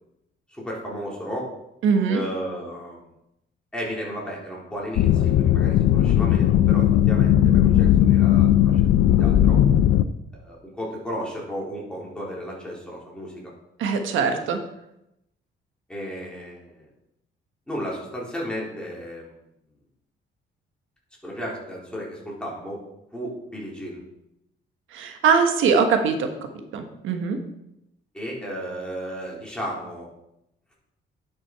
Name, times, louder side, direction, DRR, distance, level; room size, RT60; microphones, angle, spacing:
voice 1, 0.5-1.5 2.1-3.0 3.7-9.6 10.3-13.4 15.9-16.9 17.7-19.3 21.2-22.8 23.1-24.0 28.1-30.1, equal, 5° left, -4 dB, 3.8 m, -34 dB
voice 2, 1.8-2.2 13.8-14.6 24.9-26.3 26.7-27.4, right 5 dB, 85° right, 6 dB, 1.4 m, -21 dB
sound 1, 5.0-10.0, left 11 dB, 85° left, 0.5 m, -17 dB
10.5 x 6.3 x 4.8 m, 0.85 s
cardioid pair, 90°, 20 cm